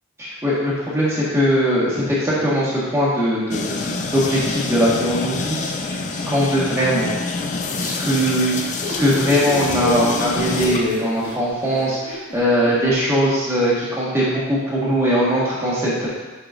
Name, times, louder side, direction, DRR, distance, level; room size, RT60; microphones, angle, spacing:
voice 1, 0.2-6.0 6.3-7.1 7.7-16.1, equal, 10° right, -8 dB, 1.5 m, -20 dB
sound 1, 3.5-11.4, left 4 dB, 35° left, 0.3 m, -27 dB
sound 2, 8.8-13.0, equal, 75° left, 1.5 m, -32 dB
8.7 x 4.9 x 2.6 m, 1.2 s
head